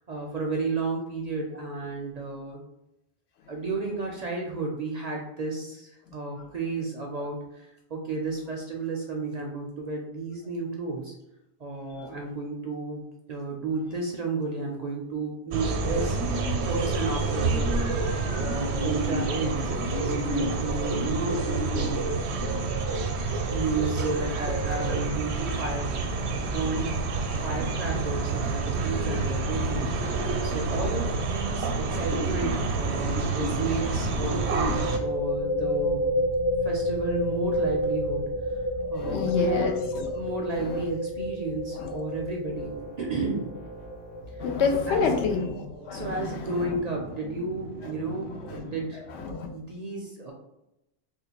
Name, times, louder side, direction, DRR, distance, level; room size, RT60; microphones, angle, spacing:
voice 1, 0.1-2.6 3.5-11.1 11.6-16.2 16.7-17.7 18.4-19.7 20.1-22.6 23.5-26.1 26.4-27.1 27.4-29.9 30.4-34.4 35.0-36.2 36.6-38.3 38.9-39.8 40.1-43.5 44.7-45.1 45.9-49.0 49.5-50.3, right 3 dB, 55° right, 0 dB, 0.5 m, -32 dB
sound 1, 15.5-35.0, right 3 dB, 80° right, 0.9 m, -28 dB
sound 2, 31.2-31.5 31.7-31.8 34.3-45.7, equal, 35° left, 0.4 m, -30 dB
voice 2, 38.8-40.1 40.6-40.8 41.8-42.0 44.4-45.6 45.9-46.7 48.4-48.5 49.1-49.5, left 5 dB, 85° left, 5 dB, 0.8 m, -28 dB
sound 3, 42.4-49.4, left 1 dB, 65° left, 1.2 m, -44 dB
3.5 x 2.3 x 2.9 m, 0.90 s
omnidirectional pair, 1.1 m